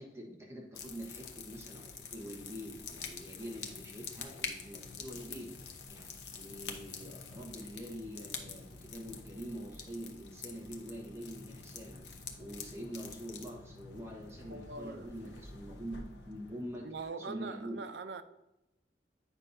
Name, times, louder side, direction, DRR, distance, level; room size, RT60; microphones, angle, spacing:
voice 1, 0.0-16.9 17.2-17.8, equal, 15° right, 1.1 m, -45 dB
sound 1, 0.7-17.0, left 5 dB, 90° left, 0.9 m, -47 dB
voice 2, 14.5-15.4 16.8-18.2, right 4 dB, 80° right, 0.5 m, -43 dB
8.3 x 5.5 x 2.6 m
head